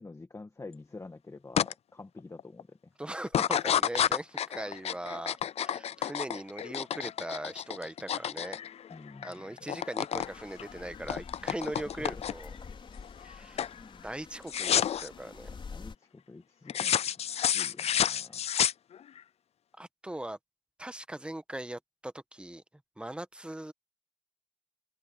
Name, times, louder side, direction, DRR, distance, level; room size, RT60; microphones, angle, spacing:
voice 1, 0.0-2.9 8.9-9.5 12.0-12.2 13.7-14.0 15.7-18.5, left 3 dB, 30° left, 1.7 m, -48 dB
sound 1, 1.6-1.7 2.2-2.6 3.3-9.3 9.6-10.3 10.6-12.6 13.0-13.3 13.6-13.8 14.5-15.1 16.7-19.2, left 9 dB, 75° left, 0.4 m, -30 dB
voice 2, 3.0-8.6 9.2-12.5 13.2-13.6 14.0-15.5 19.8-20.4 20.8-22.6 23.0-23.7, right 1 dB, 10° right, 1.2 m, -40 dB
sound 2, 10.1-16.0, left 5 dB, 50° left, 5.3 m, -48 dB
cardioid pair, 90°, 11 cm